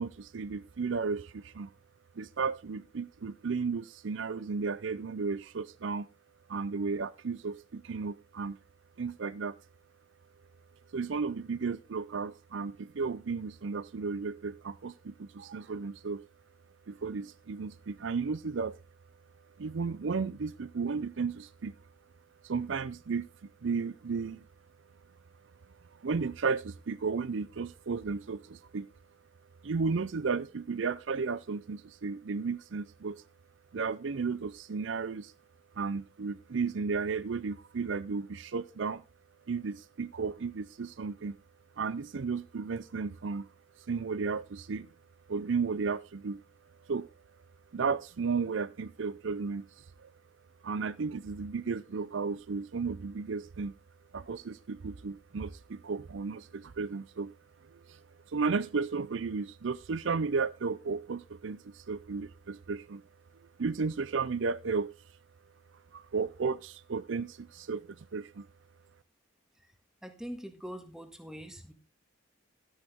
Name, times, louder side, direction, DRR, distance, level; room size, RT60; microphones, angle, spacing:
voice 1, 0.0-1.7 2.2-6.1 6.5-8.6 9.0-9.6 10.9-16.2 16.9-18.8 19.6-21.7 22.4-24.5 25.9-28.9 29.6-33.2 33.7-35.3 35.8-39.0 39.5-41.4 41.8-43.5 43.8-44.9 45.3-46.4 46.8-47.1 47.7-50.1 50.6-53.7 54.1-57.3 57.6-63.0 63.6-64.9 65.9-68.5, right 4 dB, 65° right, 0.5 m, -34 dB
voice 2, 70.0-71.7, equal, 5° right, 1.7 m, -43 dB
13.0 x 10.0 x 3.6 m
head